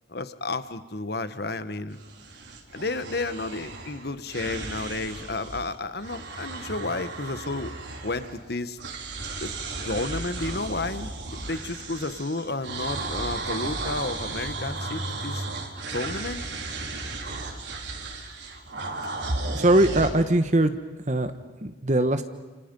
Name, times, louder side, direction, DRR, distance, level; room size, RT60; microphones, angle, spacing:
voice 1, 0.1-2.0 2.7-7.7 8.0-8.8 9.4-9.5 9.8-11.1 11.4-15.4 15.9-16.4, left 2 dB, 55° left, 12 dB, 1.3 m, -31 dB
sound 1, 1.9-5.7 6.0-8.5 8.8-20.1, right 3 dB, 65° right, 4.0 m, -35 dB
voice 2, 19.5-20.8 21.1-21.3 21.6-22.2, right 1 dB, 40° right, 9 dB, 1.3 m, -21 dB
30.0 x 29.0 x 5.5 m, 1.3 s
head